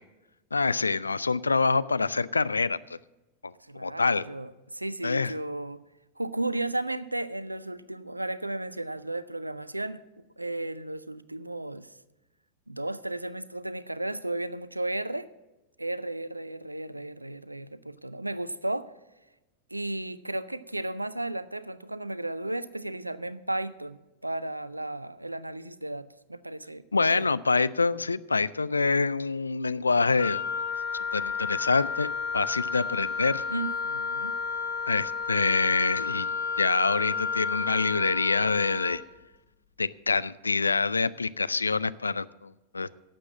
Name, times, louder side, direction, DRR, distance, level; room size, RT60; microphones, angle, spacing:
voice 1, 0.5-2.8 3.4-3.5 3.8-4.2 5.0-5.3 26.9-30.4 31.1-33.4 34.9-36.3 36.6-39.0 39.8-43.0, left 4 dB, 80° left, 17 dB, 0.3 m, -26 dB
voice 2, 3.6-5.8 6.2-10.0 10.4-11.9 12.7-15.3 15.8-18.9 19.7-26.8 27.1-27.3 33.5-34.3, right 2 dB, 85° right, 17 dB, 0.5 m, -34 dB
Wind instrument woodwind instrument, 30.2-39.0, left 5 dB, 65° left, 1.8 m, -31 dB
12.0 x 7.6 x 7.3 m, 1.1 s
figure-of-eight pair, 90°, 0 cm